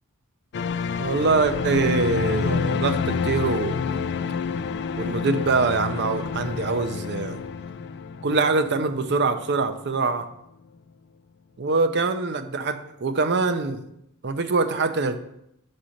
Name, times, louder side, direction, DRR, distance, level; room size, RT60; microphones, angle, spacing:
sound 1, 0.5-9.7 10.0-10.1, left 5 dB, 50° left, 0.3 m, -28 dB
voice 1, 1.0-4.1 5.0-7.4 8.2-10.3 11.6-13.8 14.2-15.2, right 3 dB, 50° right, 10 dB, 0.6 m, -24 dB
6.1 x 4.3 x 6.4 m, 0.79 s
head